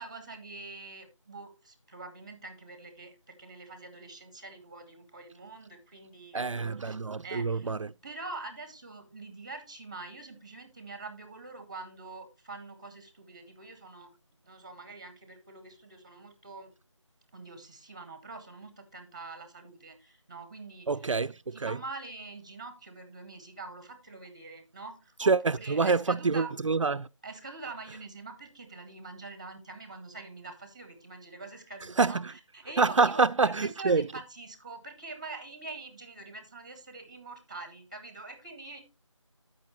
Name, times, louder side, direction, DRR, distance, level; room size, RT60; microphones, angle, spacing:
voice 1, 0.0-6.9 7.2-7.7 8.0-14.1 14.4-16.7 17.3-26.5 27.2-38.8, right 3 dB, 10° right, 0.8 m, -45 dB
voice 2, 6.3-7.9 20.9-21.8 25.3-25.4 25.7-27.1 32.0-32.3 32.8-34.0, right 4 dB, 75° right, 0.4 m, -26 dB
13.5 x 5.3 x 3.0 m
figure-of-eight pair, 170°, 17 cm